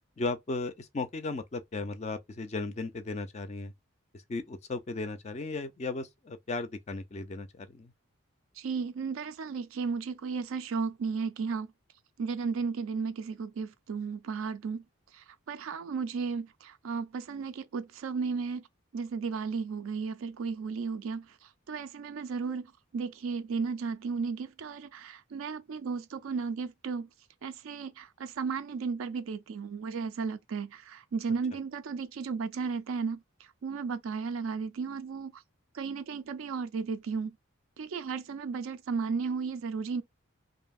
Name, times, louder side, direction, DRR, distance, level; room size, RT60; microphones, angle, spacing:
voice 1, 0.2-3.7 4.3-7.9, left 3 dB, 30° left, 0.3 m, -36 dB
voice 2, 8.6-11.7 12.2-14.8 15.1-18.6 18.9-27.1 27.4-33.2 33.6-35.4 35.7-37.4 37.8-40.0, right 5 dB, 75° right, 0.4 m, -34 dB
2.7 x 2.6 x 2.2 m
head